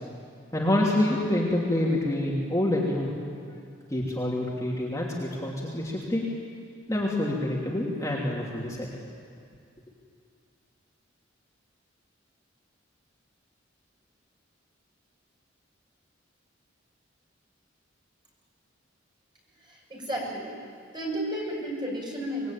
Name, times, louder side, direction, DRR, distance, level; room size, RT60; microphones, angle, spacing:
voice 1, 0.5-3.1 3.9-6.2 6.9-8.9, left 1 dB, 15° left, -4 dB, 3.2 m, -27 dB
voice 2, 19.7-20.5 20.9-22.5, right 1 dB, 25° right, -2 dB, 7.4 m, -32 dB
25.5 x 21.0 x 9.3 m, 2.3 s
head